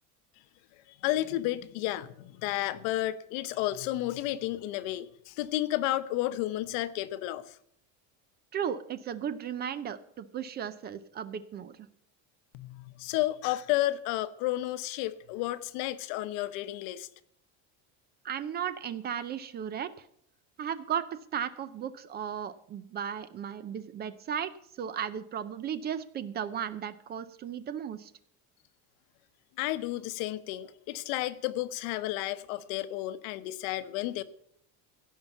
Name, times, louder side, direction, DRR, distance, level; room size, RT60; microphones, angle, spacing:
voice 1, 1.0-7.5 12.5-17.1 29.6-34.2, left 15 dB, 75° left, 1.0 m, -32 dB
voice 2, 8.5-11.9 18.2-20.0 20.6-24.5 24.8-28.1, right 8 dB, 25° right, 0.5 m, -35 dB
16.0 x 5.7 x 8.0 m
cardioid pair, 170°, 38 cm